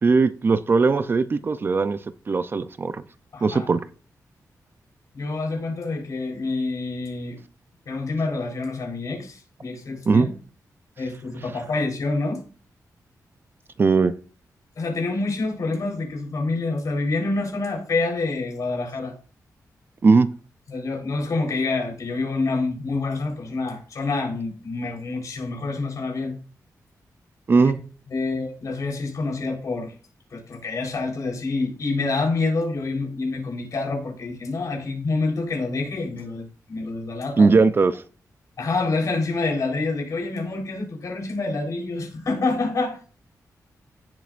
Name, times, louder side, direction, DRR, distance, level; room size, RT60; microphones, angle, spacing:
voice 1, 0.0-2.0 2.3-3.0 3.4-3.8 10.1-10.3 13.8-14.2 20.0-20.3 27.5-27.8 37.4-38.0, right 4 dB, 35° right, 0.5 m, -19 dB
voice 2, 3.3-3.7 5.1-7.4 7.9-10.3 11.0-12.4 14.8-19.1 20.7-26.4 27.6-27.7 28.1-29.9 30.3-37.6 38.6-43.0, left 3 dB, 60° left, 4.0 m, -27 dB
16.5 x 7.6 x 2.5 m
wide cardioid pair, 160°, 6 cm